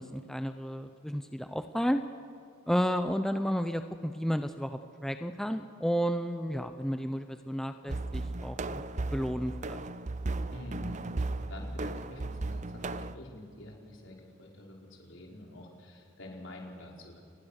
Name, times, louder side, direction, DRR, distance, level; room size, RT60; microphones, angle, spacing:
voice 1, 0.0-2.0 2.7-9.8, equal, ahead, 8 dB, 0.7 m, -32 dB
sound 1, 7.9-13.1, right 2 dB, 35° right, 0.6 m, -35 dB
voice 2, 10.5-17.2, left 1 dB, 65° left, -1 dB, 5.1 m, -47 dB
29.5 x 21.0 x 6.6 m, 2.3 s
head